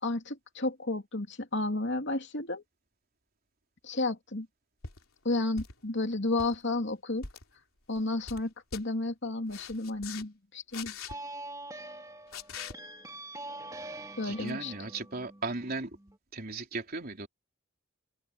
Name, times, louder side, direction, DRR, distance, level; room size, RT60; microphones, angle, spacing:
voice 1, 0.0-2.6 3.8-4.5 5.2-7.3 7.9-10.9 14.2-14.7, left 2 dB, 55° left, 3.0 m, -32 dB
sound 1, 4.8-5.0 5.6-5.9 6.3-6.6 7.2-7.4 7.9-8.4 8.7-8.8 9.5-10.2 10.7-11.1 12.3-12.7 14.5-14.6, left 5 dB, 80° left, 3.4 m, -42 dB
sound 2, 11.1-16.2, right 2 dB, 15° right, 3.1 m, -44 dB
voice 2, 14.2-15.9 16.3-17.3, right 3 dB, 45° right, 4.0 m, -36 dB
open air
head